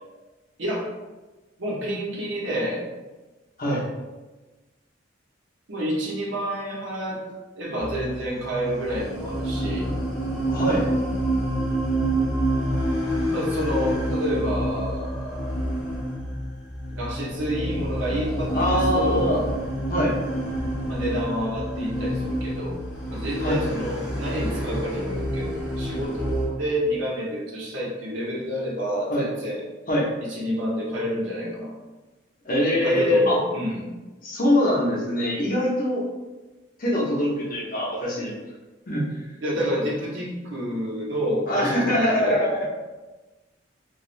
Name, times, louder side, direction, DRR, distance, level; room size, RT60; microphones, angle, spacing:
voice 1, 0.6-0.9 1.6-2.8 5.7-7.2 7.6-9.9 13.3-15.6 17.0-19.4 20.9-22.8 23.1-29.6 30.3-31.7 32.8-33.9 39.4-42.4, equal, 75° right, -4 dB, 0.8 m, -28 dB
sound 1, 7.8-26.5, right 1 dB, 5° right, 1.2 m, -28 dB
voice 2, 10.5-10.9 18.5-19.4 19.9-20.2 23.4-23.6 29.1-29.3 29.9-30.1 32.4-33.4 34.2-36.0 36.8-38.4 38.9-39.1 41.5-42.7, left 1 dB, 45° left, -4 dB, 0.7 m, -23 dB
3.1 x 2.3 x 2.5 m, 1.2 s
head